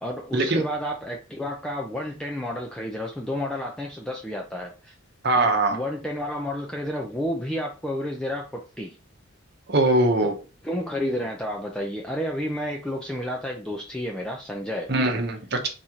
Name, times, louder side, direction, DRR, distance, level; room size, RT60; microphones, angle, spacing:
voice 1, 0.0-4.9 5.3-9.0 10.2-10.3 10.6-14.9, equal, 5° left, 0 dB, 0.4 m, -31 dB
voice 2, 5.2-5.8 9.7-10.3 14.9-15.7, right 2 dB, 50° right, 3 dB, 0.9 m, -21 dB
4.1 x 3.0 x 3.7 m, 0.33 s
head